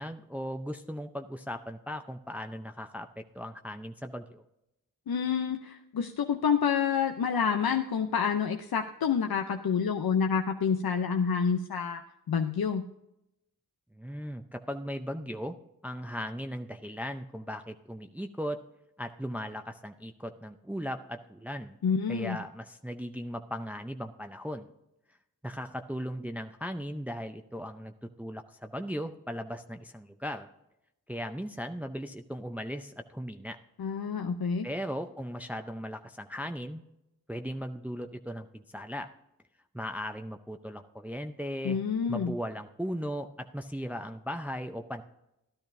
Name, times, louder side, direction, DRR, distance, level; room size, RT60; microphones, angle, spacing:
voice 1, 0.0-4.4 14.0-15.6 15.8-18.6 19.0-21.8 22.1-24.7 25.4-30.5 31.1-33.6 34.6-36.8 37.3-39.1 39.7-41.8 42.1-45.0, equal, 5° right, 6 dB, 0.6 m, -37 dB
voice 2, 5.1-12.0 12.3-12.8 21.8-22.4 33.8-34.7 41.6-42.3, left 6 dB, 75° left, 5 dB, 0.7 m, -28 dB
13.5 x 12.0 x 2.6 m, 0.86 s
cardioid pair, 55°, 37 cm